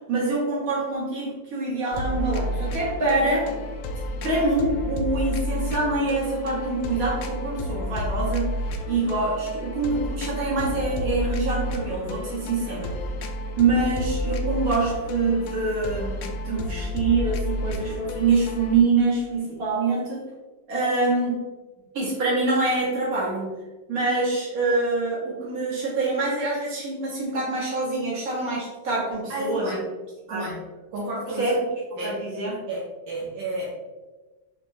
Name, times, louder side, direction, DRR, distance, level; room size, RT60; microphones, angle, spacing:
voice 1, 0.1-3.5 4.2-8.6 8.9-13.0 13.6-20.2 20.7-21.4 21.9-23.5 23.9-29.8 30.3-30.5 31.4-31.6 32.0-32.5, right 3 dB, 50° right, -6 dB, 2.0 m, -25 dB
sound 1, 1.9-18.8, left 1 dB, 85° left, 1.3 m, -31 dB
voice 2, 29.3-29.9 30.3-30.6 30.9-31.5 32.0-32.2 32.7-33.7, right 1 dB, 75° right, -5 dB, 1.5 m, -31 dB
5.2 x 3.5 x 2.9 m, 1.2 s
omnidirectional pair, 2.0 m